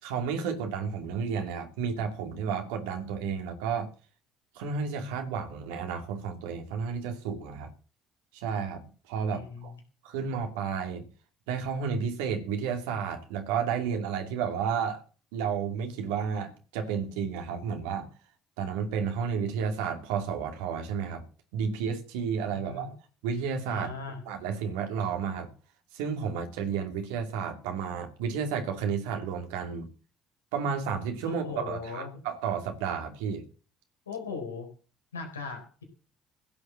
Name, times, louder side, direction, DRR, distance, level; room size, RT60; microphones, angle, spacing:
voice 1, 0.0-3.9 4.5-7.7 8.3-8.8 9.1-9.7 10.0-11.0 11.5-15.0 15.3-18.1 18.6-21.2 21.5-22.9 23.2-23.9 24.3-25.5 25.9-29.9 30.5-33.4, right 6 dB, 70° right, 2.8 m, -32 dB
voice 2, 9.3-9.7 22.5-22.9 23.7-24.2 31.2-32.1 34.1-34.7 35.1-35.8, left 4 dB, 85° left, 4.0 m, -38 dB
16.0 x 8.0 x 7.5 m
figure-of-eight pair, 55°, 0 cm